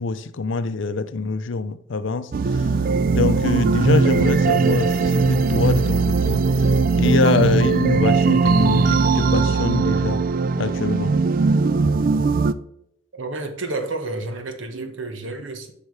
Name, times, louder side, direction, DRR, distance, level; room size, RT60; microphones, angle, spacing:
voice 1, 0.0-2.3 2.6-2.7 3.1-6.4 7.0-10.3 10.6-11.2, left 4 dB, 70° left, 0.5 m, -24 dB
sound 1, 2.3-12.5, right 4 dB, 45° right, 0.3 m, -19 dB
voice 2, 13.1-15.7, right 2 dB, 70° right, 1.3 m, -30 dB
8.2 x 5.7 x 3.3 m
head